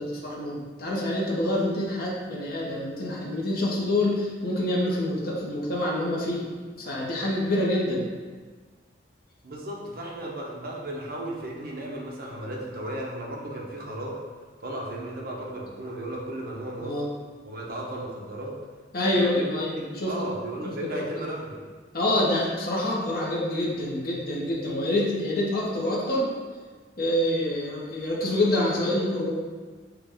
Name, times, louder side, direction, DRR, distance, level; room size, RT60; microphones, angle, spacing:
voice 1, 0.0-6.4 6.8-8.0 16.8-17.1 18.9-20.2 20.6-21.1 21.9-26.3 27.0-29.3, left 1 dB, 50° left, -4 dB, 0.9 m, -26 dB
voice 2, 9.4-14.2 14.6-17.1 17.4-18.5 19.1-21.6, right 1 dB, 50° right, -2 dB, 0.8 m, -35 dB
5.9 x 2.4 x 3.5 m, 1.5 s
head